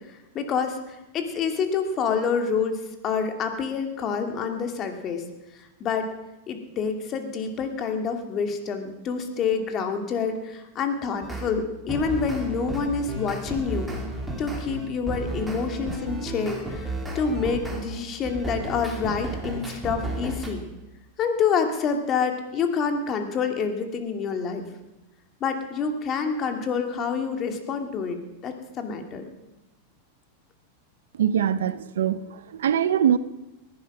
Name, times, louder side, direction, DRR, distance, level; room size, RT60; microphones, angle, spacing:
voice 1, 0.3-2.8 3.0-5.2 5.8-6.1 6.5-13.9 14.4-20.6 21.2-24.6 25.4-28.2 28.4-29.3, left 5 dB, 35° left, 2.2 m, -27 dB
sound 1, 11.2-11.5 11.9-17.8 18.2-20.5, right 2 dB, 5° right, 3.0 m, -33 dB
voice 2, 31.1-33.2, right 9 dB, 85° right, 0.7 m, -23 dB
19.5 x 11.0 x 6.1 m
hypercardioid pair, 130°, 0 cm